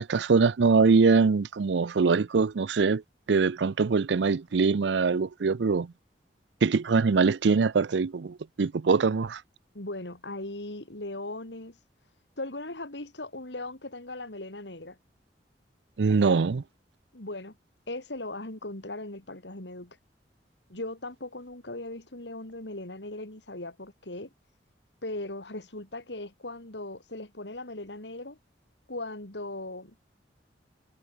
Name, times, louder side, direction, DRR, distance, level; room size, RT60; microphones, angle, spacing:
voice 1, 0.0-3.0 3.3-5.9 6.6-9.4 16.0-16.6, right 4 dB, 85° right, 0.5 m, -23 dB
voice 2, 9.7-11.8 12.4-15.0 17.1-17.6 17.9-20.0 20.7-24.3 25.0-28.4 28.9-29.9, left 2 dB, 85° left, 4.0 m, -38 dB
head